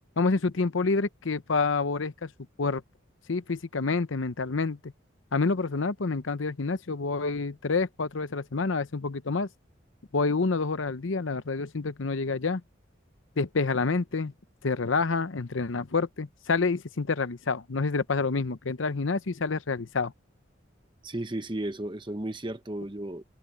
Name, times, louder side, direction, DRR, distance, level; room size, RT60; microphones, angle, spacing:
voice 1, 0.2-2.3 2.6-2.8 3.3-4.9 5.3-9.5 10.1-12.6 13.4-14.3 14.6-20.1, left 4 dB, 80° left, 0.8 m, -28 dB
voice 2, 21.0-23.2, right 1 dB, 25° right, 1.1 m, -34 dB
open air
head